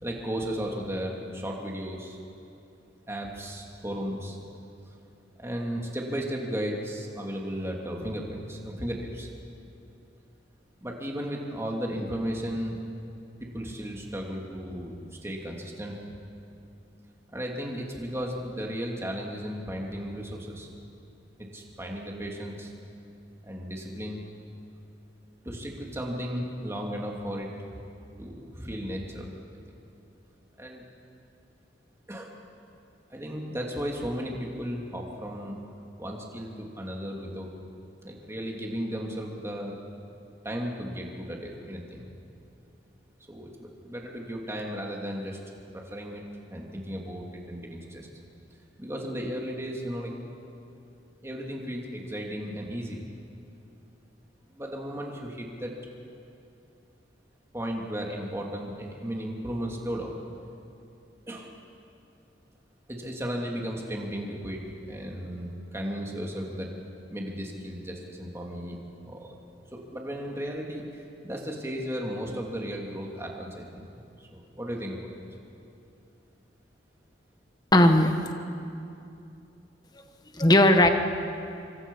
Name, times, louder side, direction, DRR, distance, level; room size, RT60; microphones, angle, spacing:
voice 1, 0.0-2.2 3.1-4.4 5.4-9.3 10.8-12.8 13.4-16.0 17.3-20.7 21.4-22.7 23.4-24.2 25.4-27.5 28.2-29.3 29.7-29.8 30.6-30.8 32.1-32.3 33.1-35.5 36.0-37.5 38.0-39.8 40.4-42.0 43.3-45.4 45.7-46.2 46.5-48.1 48.8-50.1 51.2-53.0 54.5-55.7 57.5-60.2 61.3-61.5 62.9-66.7 67.1-68.8 69.0-69.3 69.7-75.0, equal, 15° right, -1 dB, 2.8 m, -35 dB
voice 2, 77.7-78.1 80.3-80.9, left 1 dB, 20° left, 6 dB, 1.4 m, -17 dB
26.0 x 24.0 x 5.6 m, 2.7 s
head